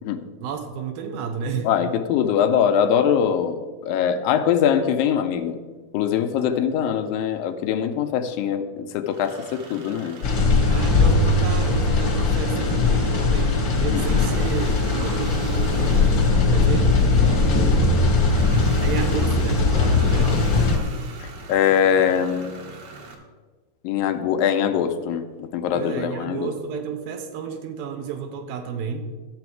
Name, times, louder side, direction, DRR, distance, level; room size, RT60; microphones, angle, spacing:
voice 1, 0.4-1.7 10.7-16.0 16.5-18.0 18.8-20.6 25.7-29.1, right 6 dB, 85° right, 5 dB, 2.7 m, -31 dB
voice 2, 1.7-3.6 3.8-5.6 5.9-10.2 10.7-10.9 13.9-14.0 21.2-22.5 23.8-26.5, left 8 dB, 90° left, 7 dB, 2.4 m, -22 dB
sound 1, 9.1-23.1, right 4 dB, 60° right, 2.0 m, -41 dB
sound 2, 10.2-20.8, left 3 dB, 55° left, 1.3 m, -19 dB
13.0 x 7.0 x 4.7 m, 1.4 s
omnidirectional pair, 4.1 m